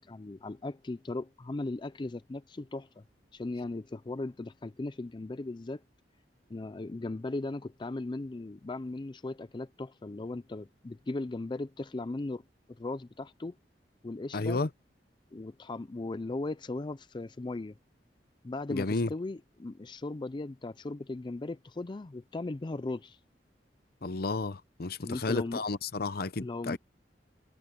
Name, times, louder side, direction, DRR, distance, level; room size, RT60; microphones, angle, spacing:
voice 1, 0.0-3.0 3.3-5.8 6.5-12.4 12.7-13.6 14.0-14.6 15.3-17.7 18.4-23.2 25.0-25.6 26.4-26.8, left 2 dB, 25° left, 0.4 m, -37 dB
voice 2, 14.3-14.7 18.7-19.1 24.0-26.8, left 3 dB, 60° left, 0.8 m, -32 dB
head